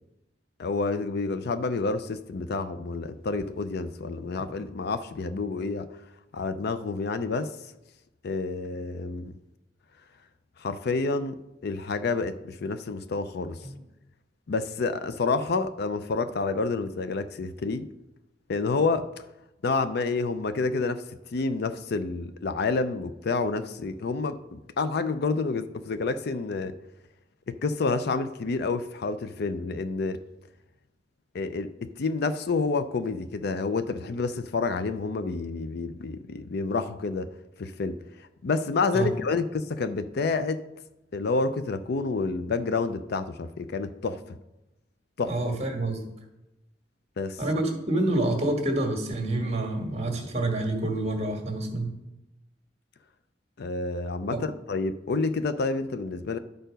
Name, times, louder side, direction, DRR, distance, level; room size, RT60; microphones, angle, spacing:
voice 1, 0.6-5.9 6.3-7.6 8.2-9.3 10.6-11.4 11.6-13.7 14.5-17.9 18.5-19.2 19.6-21.0 21.3-26.7 27.5-30.2 31.3-37.3 37.6-38.0 38.4-40.6 41.1-44.2 45.2-45.3 47.2-47.4 53.6-56.4, left 3 dB, 60° left, 12 dB, 0.5 m, -29 dB
voice 2, 45.3-46.0 47.4-52.0 54.3-54.4, right 2 dB, 35° right, 2 dB, 1.6 m, -27 dB
12.0 x 4.6 x 5.1 m, 0.93 s
head